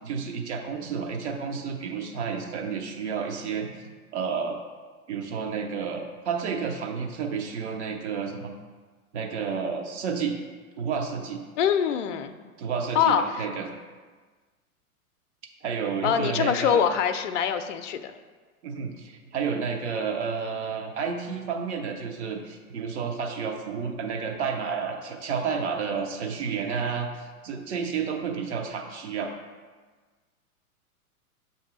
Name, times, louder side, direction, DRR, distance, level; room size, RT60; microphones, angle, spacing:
voice 1, 0.0-3.7 4.1-4.6 5.1-8.5 9.1-10.4 10.8-11.4 12.6-13.7 15.6-16.8 18.6-29.3, right 6 dB, 50° right, 2 dB, 0.9 m, -31 dB
voice 2, 11.6-12.3 12.9-13.4 16.0-18.1, left 8 dB, 55° left, 8 dB, 0.5 m, -24 dB
7.1 x 2.7 x 4.9 m, 1.4 s
figure-of-eight pair, 105°, 45 cm